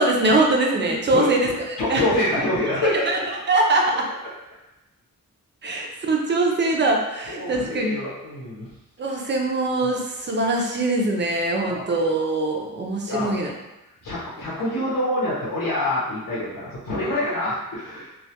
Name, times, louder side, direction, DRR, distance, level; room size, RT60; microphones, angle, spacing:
voice 1, 0.0-2.0 3.1-4.0 5.6-8.0 9.0-13.5, right 2 dB, 35° right, 0 dB, 0.4 m, -22 dB
voice 2, 0.8-1.3 1.8-3.2 7.3-8.7 9.0-9.1 11.5-11.9 13.1-13.4 14.0-18.1, left 1 dB, 85° left, -8 dB, 0.8 m, -26 dB
2.2 x 2.1 x 2.7 m, 0.95 s
wide cardioid pair, 120°, 34 cm